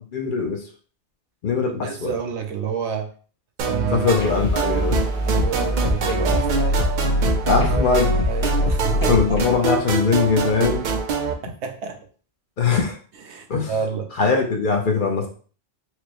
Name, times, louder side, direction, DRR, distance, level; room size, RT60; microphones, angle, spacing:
voice 1, 0.1-0.6 1.4-2.1 3.9-5.0 7.5-8.1 9.1-10.8 12.6-13.0 13.5-13.7 14.2-15.3, left 5 dB, 55° left, 2 dB, 0.8 m, -21 dB
voice 2, 1.8-3.1 3.6-4.2 5.2-6.9 7.4-7.6 8.3-9.1 11.4-12.0 13.3-14.1, right 7 dB, 90° right, 4 dB, 1.0 m, -29 dB
sound 1, 3.6-11.3, right 4 dB, 55° right, 0.5 m, -26 dB
sound 2, 4.1-9.4, equal, 80° left, 1.2 m, -23 dB
4.4 x 2.1 x 2.9 m, 0.41 s
omnidirectional pair, 1.1 m